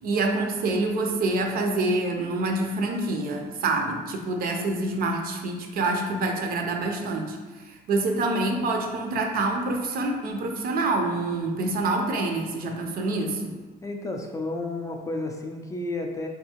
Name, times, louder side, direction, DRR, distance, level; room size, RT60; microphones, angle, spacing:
voice 1, 0.0-7.4 7.7-13.5, right 2 dB, 60° right, 3 dB, 0.6 m, -26 dB
voice 2, 13.8-16.3, left 2 dB, 20° left, 3 dB, 0.4 m, -31 dB
3.5 x 2.6 x 2.9 m, 1.3 s
cardioid pair, 110°, 17 cm